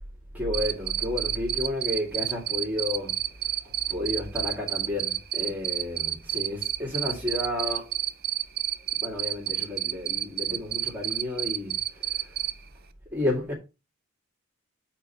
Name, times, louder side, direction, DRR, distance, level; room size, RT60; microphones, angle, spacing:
voice 1, 0.3-3.1 3.6-7.9 9.0-12.4 13.1-13.5, left 1 dB, 10° right, 2.3 m, -31 dB
Cricket, 0.5-12.5, right 12 dB, 50° right, 0.7 m, -28 dB
8.3 x 4.5 x 5.6 m
head